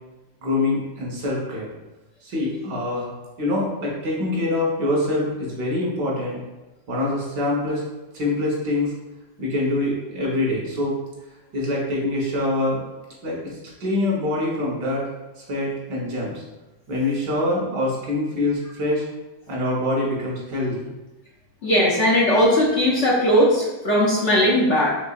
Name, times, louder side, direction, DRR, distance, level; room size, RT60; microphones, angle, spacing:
voice 1, 0.4-1.7 2.2-3.1 3.4-6.4 6.9-7.8 8.1-8.9 9.4-10.9 11.5-12.8 13.2-15.1 15.4-16.4 16.9-19.0 19.5-20.9, left 2 dB, 90° right, -4 dB, 2.0 m, -24 dB
voice 2, 21.6-24.9, equal, 55° left, -4 dB, 0.9 m, -18 dB
5.3 x 3.2 x 2.5 m, 1.1 s
omnidirectional pair, 1.8 m